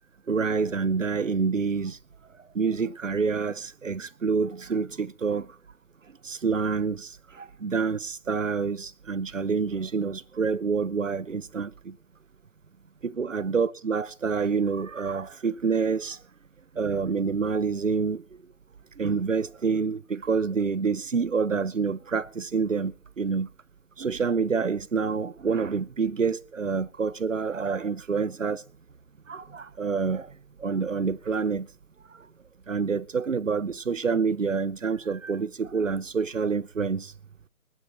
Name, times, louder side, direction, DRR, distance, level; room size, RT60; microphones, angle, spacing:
voice 1, 0.3-2.0 2.5-5.5 6.2-12.0 13.0-16.2 16.8-18.2 19.0-23.5 24.0-28.6 29.3-30.3 30.6-31.7 32.7-37.1, right 5 dB, 60° right, 0.8 m, -27 dB
20.0 x 12.0 x 4.0 m
figure-of-eight pair, 160°, 43 cm